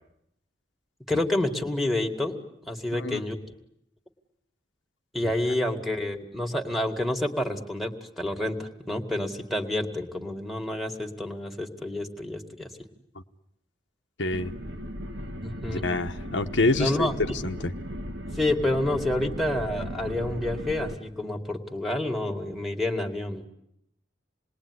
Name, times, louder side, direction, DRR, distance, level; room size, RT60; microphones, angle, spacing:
voice 1, 1.1-2.4 2.6-3.4 5.1-12.7 15.4-15.8 16.7-17.1 18.3-23.4, left 1 dB, ahead, 4 dB, 2.1 m, -28 dB
voice 2, 14.2-14.5 15.7-17.1 17.4-17.7, left 2 dB, 80° left, 6 dB, 1.2 m, -26 dB
sound 1, 14.3-20.9, equal, 85° right, 2.4 m, -36 dB
28.0 x 21.0 x 9.8 m, 0.78 s
head